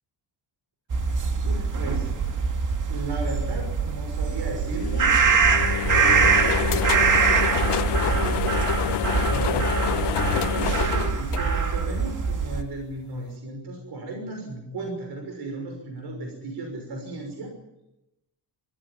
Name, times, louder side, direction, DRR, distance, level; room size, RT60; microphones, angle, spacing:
sound 1, 0.9-12.6, right 5 dB, 45° right, 2.1 m, -23 dB
voice 1, 1.4-2.1 2.9-5.1 6.0-8.4 9.3-17.5, right 2 dB, 65° right, 2 dB, 6.2 m, -35 dB
sound 2, 4.8-12.1, left 11 dB, 75° left, 1.1 m, -27 dB
21.0 x 16.0 x 8.9 m, 0.91 s
cardioid pair, 120°, 41 cm